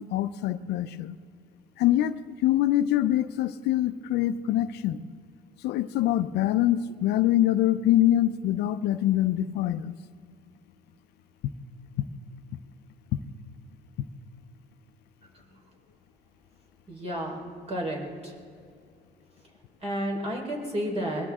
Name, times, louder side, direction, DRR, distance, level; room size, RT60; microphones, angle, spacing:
voice 1, 0.1-1.1 1.8-2.1 2.4-5.0 5.6-9.9, left 13 dB, 80° left, 12 dB, 0.6 m, -24 dB
voice 2, 16.9-17.4 17.7-18.3 19.8-21.3, equal, 40° right, 1 dB, 4.2 m, -31 dB
21.5 x 17.0 x 3.6 m, 2.4 s
cardioid pair, 110°, 17 cm